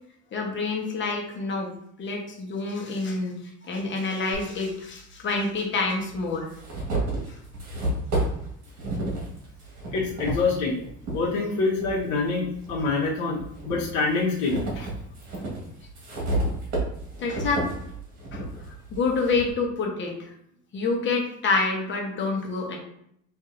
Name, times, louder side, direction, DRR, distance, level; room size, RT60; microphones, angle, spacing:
voice 1, 0.3-1.7 2.0-6.5 7.3-7.4 17.2-17.7 18.3-20.3 20.7-22.8, left 3 dB, 40° left, 1 dB, 1.0 m, -27 dB
sound 1, 4.3-4.4 5.5-5.6 6.1-11.2 11.7-12.9 13.4-19.5, right 1 dB, 60° right, 1.7 m, -31 dB
voice 2, 9.9-10.8 11.1-13.4 13.7-14.9, left 3 dB, 70° left, -5 dB, 1.2 m, -25 dB
5.7 x 2.6 x 2.6 m, 0.71 s
cardioid pair, 150°, 31 cm